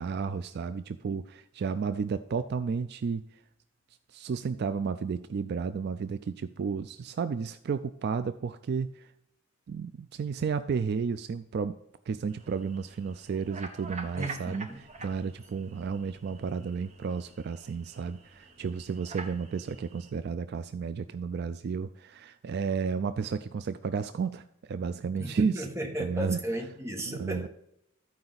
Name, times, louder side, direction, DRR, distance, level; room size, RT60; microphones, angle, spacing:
voice 1, 0.0-3.3 4.1-9.1 9.7-11.8 12.1-14.7 15.0-25.6 26.0-26.4 27.1-27.5, right 5 dB, 55° right, 11 dB, 0.3 m, -32 dB
sound 1, 12.3-20.1, right 3 dB, 35° right, 0.9 m, -46 dB
voice 2, 14.2-14.8 25.2-27.5, right 1 dB, 15° right, 2 dB, 1.2 m, -35 dB
13.5 x 4.8 x 4.0 m, 0.77 s
head